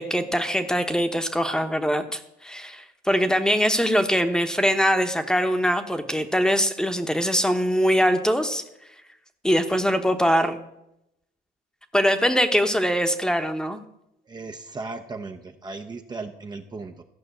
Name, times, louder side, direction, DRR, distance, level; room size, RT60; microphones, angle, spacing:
voice 1, 0.0-8.6 9.4-10.6 11.9-13.8, equal, 5° left, 8 dB, 1.1 m, -22 dB
voice 2, 14.3-17.0, right 3 dB, 25° right, 5 dB, 0.7 m, -36 dB
14.5 x 5.6 x 7.9 m, 0.84 s
cardioid pair, 110°, 17 cm